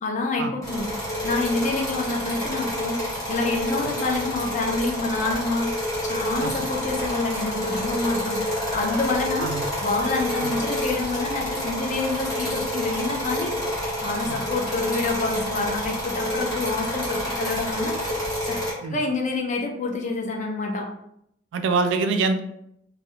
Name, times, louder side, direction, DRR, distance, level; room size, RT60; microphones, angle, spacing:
voice 1, 0.0-0.9 1.2-5.7 6.0-9.5 9.8-13.5 14.0-17.9 18.4-18.6 18.9-20.9, left 3 dB, 40° left, 2 dB, 0.4 m, -27 dB
sound 1, 0.6-18.7, left 1 dB, 20° left, 0.9 m, -28 dB
voice 2, 21.5-22.4, right 4 dB, 90° right, 7 dB, 0.3 m, -24 dB
2.3 x 2.0 x 2.9 m, 0.77 s
head